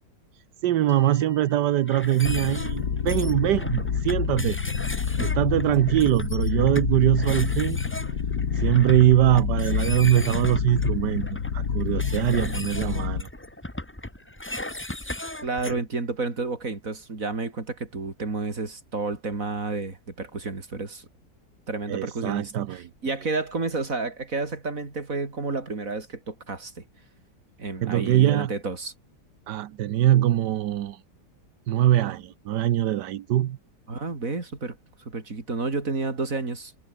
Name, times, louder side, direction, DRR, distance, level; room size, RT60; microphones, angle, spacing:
voice 1, 0.6-4.6 5.2-7.8 8.5-13.3 21.9-22.8 27.8-28.5 29.5-31.0 31.7-33.6, right 12 dB, 80° right, 1.4 m, -22 dB
sound 1, 0.9-11.4, right 1 dB, 15° right, 5.3 m, -50 dB
sound 2, 1.9-15.8, left 1 dB, 10° left, 1.1 m, -37 dB
sound 3, 2.2-13.2, left 6 dB, 65° left, 2.2 m, -28 dB
voice 2, 15.4-21.1 21.7-26.8 27.6-28.9 33.9-34.8 35.1-36.7, right 3 dB, 50° right, 3.9 m, -31 dB
omnidirectional pair, 1.8 m